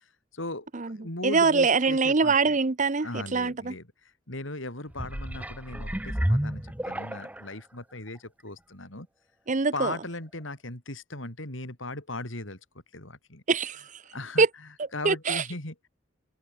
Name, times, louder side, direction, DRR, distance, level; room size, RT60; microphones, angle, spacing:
voice 1, 0.3-2.6 3.0-9.1 9.7-12.6 12.9-13.4 14.1-14.5 14.9-15.9, left 2 dB, 70° left, 5.2 m, -38 dB
voice 2, 1.2-3.7 9.5-9.9 13.5-13.8 14.4-14.5 15.0-15.4, right 4 dB, 40° right, 0.9 m, -23 dB
sound 1, 4.9-7.5 8.2-8.3, equal, 5° right, 0.9 m, -30 dB
head